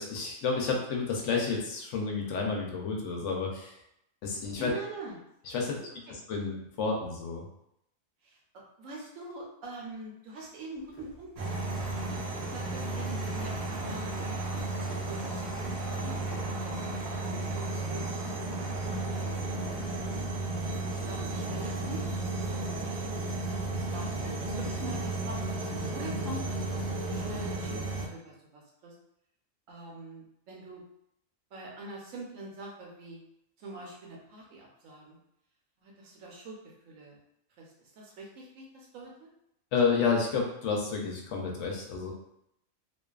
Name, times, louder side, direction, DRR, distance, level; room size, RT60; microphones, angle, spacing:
voice 1, 0.0-3.8 4.2-4.7 5.5-7.5 39.7-42.1, left 5 dB, 70° left, 0 dB, 0.9 m, -30 dB
voice 2, 4.6-5.2 6.1-6.2 8.2-11.7 12.2-16.2 17.0-20.1 20.7-23.0 23.5-25.4 25.9-29.0 29.7-30.8 31.5-33.2 33.6-35.2 35.8-37.2 37.6-39.3, right 2 dB, 85° right, -1 dB, 1.1 m, -45 dB
sound 1, 10.7-16.6, right 1 dB, 20° left, 0.4 m, -50 dB
sound 2, 11.4-28.1, right 2 dB, 60° right, 0.8 m, -33 dB
2.5 x 2.3 x 2.3 m, 0.78 s
omnidirectional pair, 1.3 m